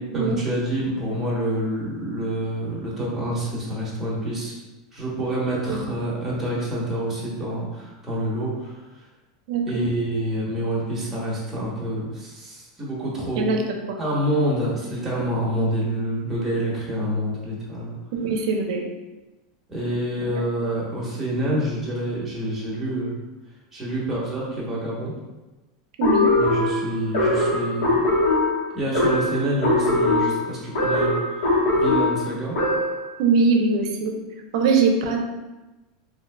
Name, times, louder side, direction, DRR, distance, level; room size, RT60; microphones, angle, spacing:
voice 1, 0.1-4.5 4.9-9.0 9.7-13.5 14.0-17.9 19.7-23.2 23.7-25.1 26.4-28.0 28.7-32.6, right 1 dB, 10° right, -7 dB, 1.0 m, -27 dB
voice 2, 9.5-9.8 13.4-13.6 18.1-18.8 26.0-26.3 33.2-34.1 34.5-35.2, right 4 dB, 70° right, 3 dB, 0.5 m, -21 dB
sound 1, 26.0-33.1, left 2 dB, 85° left, 1.3 m, -21 dB
3.6 x 2.6 x 2.2 m, 1.1 s
supercardioid pair, 145°, 3 cm